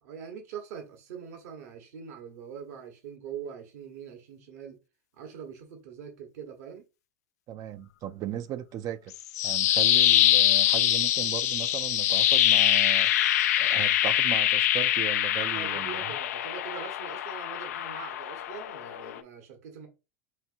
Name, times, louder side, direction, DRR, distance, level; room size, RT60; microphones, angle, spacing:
voice 1, 0.0-4.8 5.1-6.8 15.5-19.9, right 7 dB, 75° right, 1.1 m, -43 dB
voice 2, 7.5-9.1 9.4-16.1, right 10 dB, 45° right, 0.4 m, -37 dB
sound 1, 9.1-19.2, left 12 dB, 75° left, 0.4 m, -24 dB
5.6 x 2.6 x 2.5 m
hypercardioid pair, 95°, 9 cm